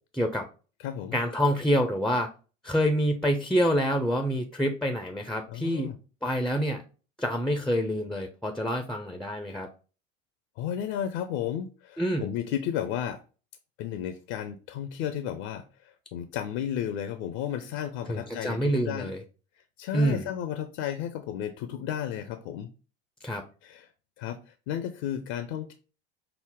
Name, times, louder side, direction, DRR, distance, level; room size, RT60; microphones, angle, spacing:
voice 1, 0.1-0.5 1.1-2.3 2.6-5.9 6.2-6.8 7.2-9.7 12.0-12.3 18.1-19.2 19.9-20.3 23.2-23.4, equal, ahead, 5 dB, 0.4 m, -27 dB
voice 2, 0.8-1.2 5.5-6.0 10.6-13.2 13.8-19.1 19.8-22.7 23.6-23.9 24.2-25.7, left 10 dB, 55° left, 9 dB, 0.5 m, -33 dB
5.7 x 2.0 x 3.4 m, 0.35 s
hypercardioid pair, 70°, 34 cm